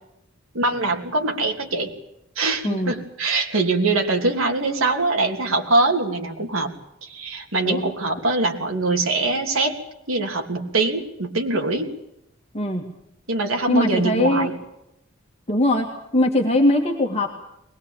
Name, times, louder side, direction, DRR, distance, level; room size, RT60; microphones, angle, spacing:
voice 1, 0.5-1.9 2.4-6.7 7.0-9.8 10.1-11.9 13.3-14.5, right 2 dB, 75° right, 2 dB, 3.2 m, -23 dB
voice 2, 12.5-12.9 13.7-14.5 15.5-15.9 16.1-17.3, left 1 dB, 30° left, 1 dB, 2.3 m, -20 dB
22.0 x 20.5 x 9.0 m, 0.81 s
head